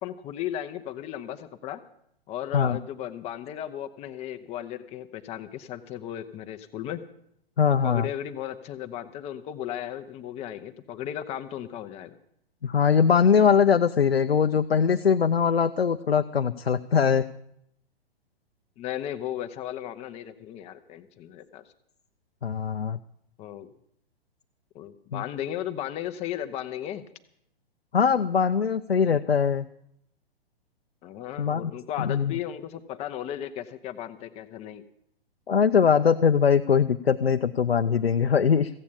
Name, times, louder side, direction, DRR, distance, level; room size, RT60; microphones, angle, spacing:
voice 1, 0.0-1.8 2.3-7.0 7.8-12.1 18.8-21.6 23.4-23.7 24.7-27.0 29.0-29.2 31.0-34.8, left 11 dB, 20° left, 10 dB, 0.7 m, -35 dB
voice 2, 7.6-8.1 12.6-17.3 22.4-23.0 25.1-25.2 27.9-29.7 31.4-31.7 32.0-32.3 35.5-38.7, left 6 dB, 85° left, 8 dB, 0.6 m, -22 dB
15.5 x 8.3 x 8.7 m, 0.73 s
figure-of-eight pair, 115°, 30 cm